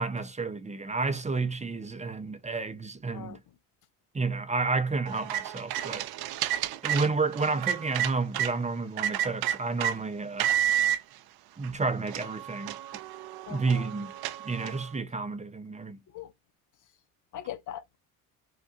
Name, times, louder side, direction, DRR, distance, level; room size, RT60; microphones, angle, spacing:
voice 1, 0.0-3.4 4.1-6.1 6.8-10.5 11.6-12.8 13.5-14.1 14.4-16.0, right 3 dB, 20° right, 0.5 m, -30 dB
sound 1, 5.1-8.5 9.0-10.0 10.4-11.0 11.6-11.7 12.1-14.9, right 11 dB, 65° right, 0.5 m, -30 dB
voice 2, 13.5-13.9 16.1-16.3 17.3-18.0, left 11 dB, 50° left, 0.5 m, -40 dB
3.7 x 2.1 x 2.4 m
supercardioid pair, 65°, 40 cm